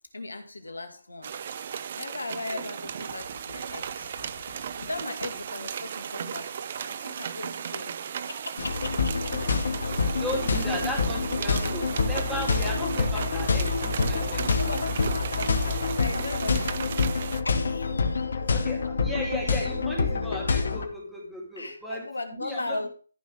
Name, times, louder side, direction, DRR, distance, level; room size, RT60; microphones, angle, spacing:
voice 1, 0.1-1.4 2.0-6.6 6.8-8.0 8.3-9.8 12.6-12.7 14.3-16.8 17.4-18.5 21.6-22.9, left 2 dB, 85° left, 6 dB, 2.8 m, -38 dB
sound 1, 1.2-17.4, right 8 dB, 45° right, 0.8 m, -36 dB
sound 2, 8.6-20.9, left 4 dB, 60° left, 2.3 m, -27 dB
voice 2, 10.2-14.5 15.0-15.2 18.5-22.0 22.4-22.9, equal, 5° right, -2 dB, 3.8 m, -36 dB
14.0 x 6.2 x 4.8 m, 0.39 s
figure-of-eight pair, 145°, 0 cm